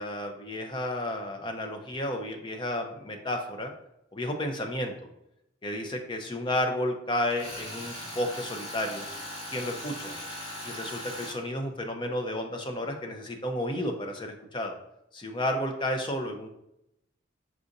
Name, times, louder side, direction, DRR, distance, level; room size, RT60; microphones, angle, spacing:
voice 1, 0.0-3.7 4.1-4.9 5.6-9.1 9.5-10.2 10.6-14.8 15.1-16.5, left 1 dB, 25° left, 4 dB, 0.5 m, -32 dB
Tools, 7.3-11.4, left 1 dB, 50° left, 1.5 m, -39 dB
4.8 x 3.9 x 2.6 m, 0.82 s
head